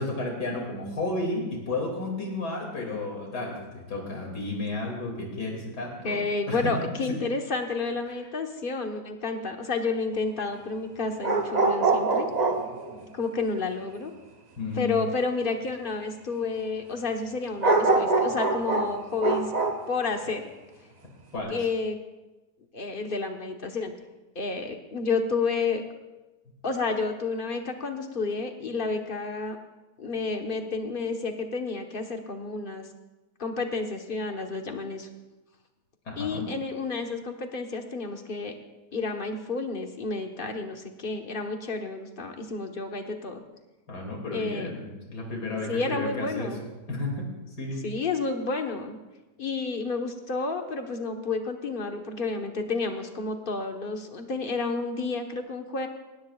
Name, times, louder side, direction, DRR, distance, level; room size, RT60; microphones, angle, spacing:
voice 1, 0.0-6.2 6.5-6.7 8.1-8.2 14.6-15.0 21.3-21.6 36.0-36.5 43.9-46.5 46.9-47.8, left 2 dB, 80° left, 0 dB, 3.3 m, -32 dB
voice 2, 6.0-12.3 13.1-14.1 14.8-19.5 19.9-20.5 21.5-22.0 22.7-23.9 24.3-25.8 26.6-29.6 30.0-32.9 33.4-35.1 36.2-38.5 38.9-43.4 44.3-44.7 45.7-46.6 47.8-49.0 49.4-55.9, left 4 dB, 35° left, 4 dB, 1.3 m, -30 dB
sound 1, 11.2-13.0 17.6-19.9 21.3-21.4, right 3 dB, 35° right, 0.8 m, -24 dB
20.5 x 17.5 x 2.4 m, 1.1 s
omnidirectional pair, 1.7 m